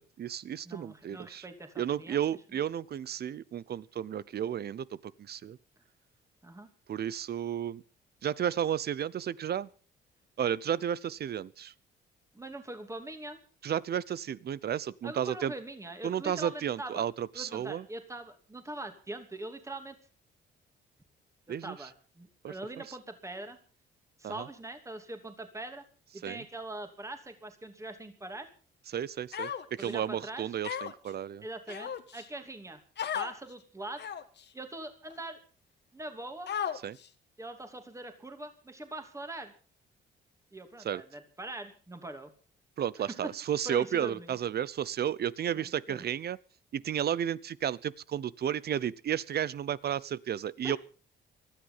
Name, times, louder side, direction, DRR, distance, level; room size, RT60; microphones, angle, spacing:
voice 1, 0.0-1.4 1.8-5.6 6.9-7.8 8.2-9.7 10.4-11.7 13.6-15.5 16.0-17.8 21.5-21.8 22.4-22.5 24.2-24.5 26.2-26.4 28.9-31.4 36.8-37.0 40.8-41.0 42.8-46.4 46.7-50.8, right 9 dB, 55° right, 21 dB, 0.8 m, -33 dB
voice 2, 0.6-2.6 6.4-6.7 12.3-13.4 15.0-17.0 17.3-20.0 21.5-23.6 24.2-25.8 26.1-28.5 29.8-30.6 31.4-32.8 33.1-34.0 34.5-35.4 35.9-36.5 37.4-39.5 40.5-42.3 43.0-43.3 43.6-44.4 45.5-46.1 50.6-50.8, right 2 dB, 15° right, 7 dB, 2.9 m, -42 dB
Human voice, 29.3-29.9 30.6-31.1 31.7-32.3 33.0-33.3 34.0-34.4 35.1-35.2 36.5-37.1, left 8 dB, 60° left, 1.7 m, -35 dB
18.5 x 13.0 x 5.7 m, 0.39 s
cardioid pair, 90°, 20 cm